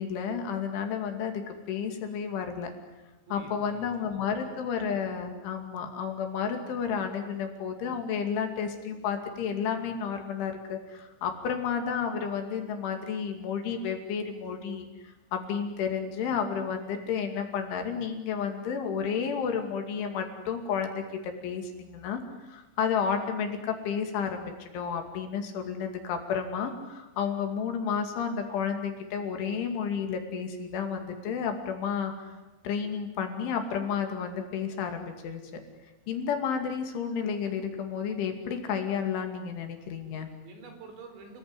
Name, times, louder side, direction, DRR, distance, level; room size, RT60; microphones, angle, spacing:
voice 1, 0.0-2.7 3.3-32.3 32.6-35.4 36.1-40.3, left 7 dB, 65° left, 5 dB, 4.7 m, -31 dB
voice 2, 3.3-4.5 40.4-41.4, right 4 dB, 60° right, 5 dB, 6.3 m, -48 dB
29.5 x 20.5 x 9.8 m, 1.1 s
omnidirectional pair, 6.0 m